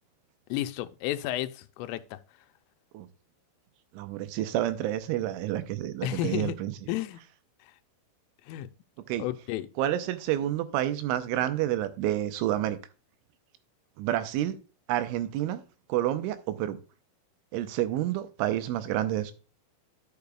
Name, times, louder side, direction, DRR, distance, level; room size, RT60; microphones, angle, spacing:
voice 1, 0.5-2.2 6.0-6.6 6.9-7.2 8.5-8.7 9.2-9.7, left 13 dB, 90° left, 3.2 m, -32 dB
voice 2, 3.9-6.7 9.1-9.3 9.8-12.8 14.0-14.6 14.9-15.6 15.9-16.8 17.5-19.3, right 13 dB, 90° right, 3.2 m, -29 dB
11.5 x 6.8 x 2.3 m
omnidirectional pair, 5.6 m